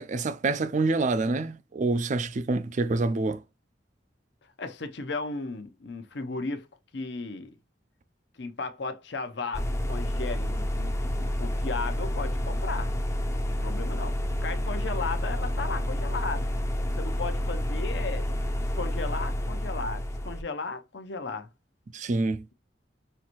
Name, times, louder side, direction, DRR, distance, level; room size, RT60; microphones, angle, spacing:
voice 1, 0.0-3.4 21.9-22.5, right 3 dB, 40° right, 0.4 m, -27 dB
voice 2, 4.6-6.7 6.9-7.5 8.4-12.9 13.5-14.2 14.4-16.5 17.0-18.2 18.6-21.5, left 3 dB, 65° left, 0.8 m, -35 dB
sound 1, 9.5-20.4, equal, 15° left, 0.6 m, -29 dB
5.5 x 2.6 x 3.0 m
head